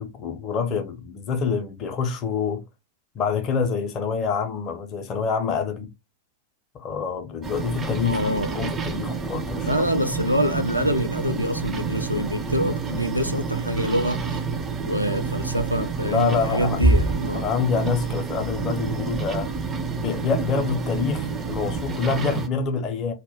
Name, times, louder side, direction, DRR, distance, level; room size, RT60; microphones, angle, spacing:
voice 1, 0.0-2.6 3.1-5.9 6.7-9.9 16.0-16.8 17.3-19.5 20.0-23.1, left 5 dB, 30° left, 0.5 m, -26 dB
sound 1, 7.4-22.5, right 4 dB, 20° right, 0.4 m, -28 dB
voice 2, 8.0-8.5 9.6-14.4 14.9-17.5, equal, 90° right, 0.3 m, -25 dB
2.2 x 2.1 x 3.3 m
figure-of-eight pair, 90°, 0 cm